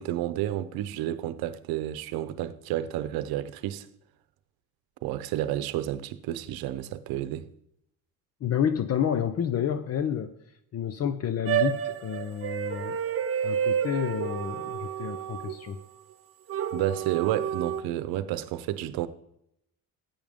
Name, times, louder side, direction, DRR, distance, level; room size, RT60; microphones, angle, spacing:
voice 1, 0.0-3.9 5.0-7.5 16.7-19.1, right 13 dB, 80° right, 0.8 m, -31 dB
voice 2, 8.4-10.3 10.7-13.0 13.4-15.8, left 8 dB, 45° left, 0.7 m, -29 dB
sound 1, 11.5-15.8 16.5-17.8, right 8 dB, 40° right, 0.8 m, -30 dB
14.0 x 8.9 x 3.6 m
cardioid pair, 105°, 36 cm